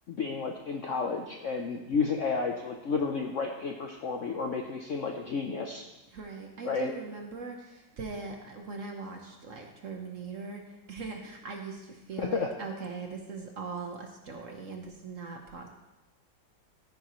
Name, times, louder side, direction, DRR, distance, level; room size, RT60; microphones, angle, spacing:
voice 1, 0.1-5.9 6.6-6.9 12.2-12.5, left 4 dB, 65° left, 2 dB, 0.8 m, -31 dB
voice 2, 6.1-15.7, right 4 dB, 50° right, 3 dB, 1.1 m, -40 dB
14.0 x 9.0 x 3.1 m, 1.0 s
omnidirectional pair, 2.1 m